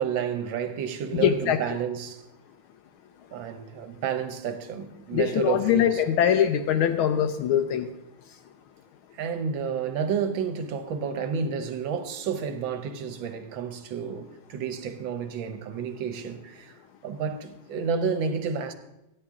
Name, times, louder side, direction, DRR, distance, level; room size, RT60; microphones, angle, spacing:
voice 1, 0.0-2.2 3.3-6.0 9.1-16.7 17.0-18.7, right 6 dB, 70° right, 1.5 m, -30 dB
voice 2, 1.2-1.6 5.1-7.9, left 9 dB, 80° left, 1.4 m, -22 dB
14.5 x 9.8 x 3.6 m
omnidirectional pair, 2.3 m